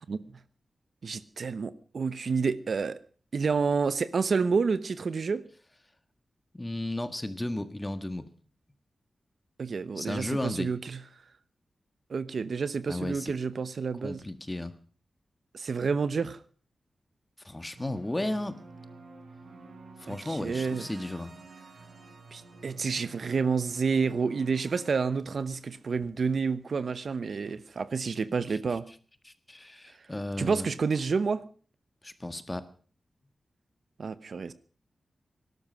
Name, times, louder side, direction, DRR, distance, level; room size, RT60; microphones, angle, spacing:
voice 1, 1.0-3.0 3.3-5.4 9.6-11.0 12.1-14.2 15.5-16.4 20.1-20.9 22.3-28.8 30.4-31.4 34.0-34.5, right 5 dB, 65° right, 14 dB, 0.9 m, -29 dB
voice 2, 6.5-8.2 10.0-10.7 12.9-13.3 14.0-14.7 17.4-18.6 20.0-21.3 29.2-30.7 32.0-32.7, left 1 dB, 15° left, 11 dB, 1.5 m, -34 dB
sound 1, 17.8-24.9, right 4 dB, 85° right, 5.2 m, -49 dB
18.0 x 12.5 x 6.1 m, 0.43 s
wide cardioid pair, 105°, 0 cm